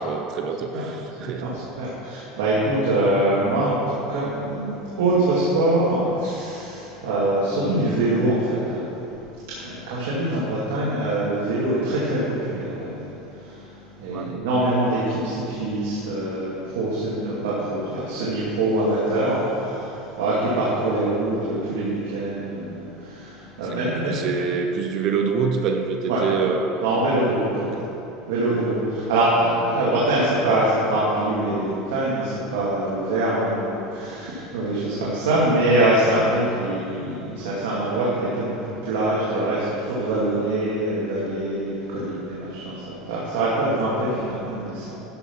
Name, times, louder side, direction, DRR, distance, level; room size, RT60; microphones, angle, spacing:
voice 1, 0.0-1.5 14.1-14.4 23.9-26.8 27.6-27.8 28.9-29.1, right 5 dB, 50° right, 5 dB, 0.8 m, -26 dB
voice 2, 1.3-8.9 9.5-24.2 26.1-26.2 26.8-27.7 28.3-45.0, right 1 dB, 85° right, -8 dB, 2.5 m, -24 dB
12.5 x 5.7 x 6.0 m, 3.0 s
supercardioid pair, 135°, 0 cm